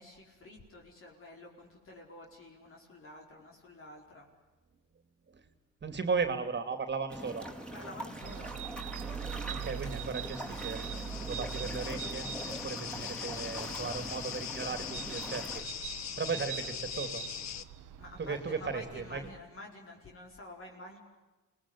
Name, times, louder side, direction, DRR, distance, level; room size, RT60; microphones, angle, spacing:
voice 1, 0.0-4.3 7.7-8.5 16.3-16.4 18.0-21.0, left 2 dB, 45° left, 0 dB, 5.0 m, -49 dB
voice 2, 5.8-7.5 9.5-10.8 11.2-12.3 12.6-15.6 16.2-17.2 18.2-19.3, right 5 dB, 35° right, 9 dB, 2.8 m, -36 dB
sound 1, 7.1-15.6, right 1 dB, 5° left, 4.3 m, -43 dB
sound 2, 8.2-19.4, right 9 dB, 85° right, 1.5 m, -43 dB
sound 3, 10.0-17.6, left 10 dB, 65° left, 1.3 m, -41 dB
26.5 x 20.5 x 10.0 m, 1.2 s
cardioid pair, 90°, 30 cm